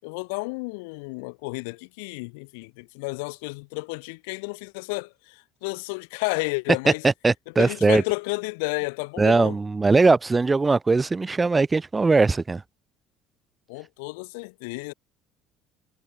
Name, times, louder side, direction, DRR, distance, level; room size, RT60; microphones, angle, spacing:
voice 1, 0.0-7.0 7.6-9.5 13.7-14.9, left 30 dB, 80° left, 5.6 m, -31 dB
voice 2, 6.9-8.0 9.2-12.6, right 3 dB, 20° right, 6.1 m, -20 dB
hypercardioid pair, 70°, 0 cm